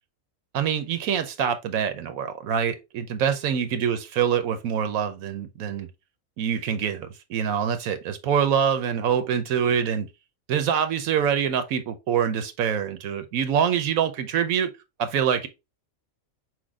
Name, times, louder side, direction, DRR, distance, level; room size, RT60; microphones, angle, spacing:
voice 1, 0.5-5.9 6.4-10.1 10.5-14.7 15.0-15.5, right 8 dB, 90° right, 1.2 m, -25 dB
6.1 x 2.2 x 3.5 m
omnidirectional pair, 1.4 m